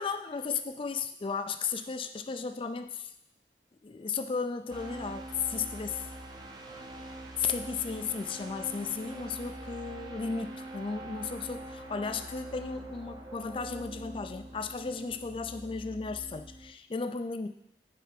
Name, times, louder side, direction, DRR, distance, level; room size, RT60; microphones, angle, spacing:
voice 1, 0.0-3.1 3.8-6.1 7.4-17.5, left 5 dB, 30° left, 9 dB, 0.3 m, -35 dB
sound 1, 4.7-16.7, right 1 dB, 25° right, 0.6 m, -44 dB
6.4 x 4.5 x 5.1 m, 0.78 s
head